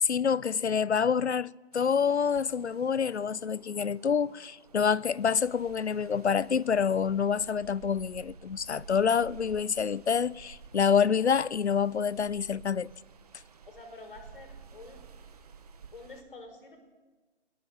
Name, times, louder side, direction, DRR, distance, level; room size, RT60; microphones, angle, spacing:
voice 1, 0.0-12.9, left 6 dB, 75° left, 0.7 m, -27 dB
sound 1, 1.7-16.2, right 5 dB, 35° right, 1.9 m, -53 dB
voice 2, 13.7-15.0 15.9-16.8, left 3 dB, 50° left, 5.9 m, -48 dB
26.5 x 20.5 x 7.6 m
figure-of-eight pair, 160°, 34 cm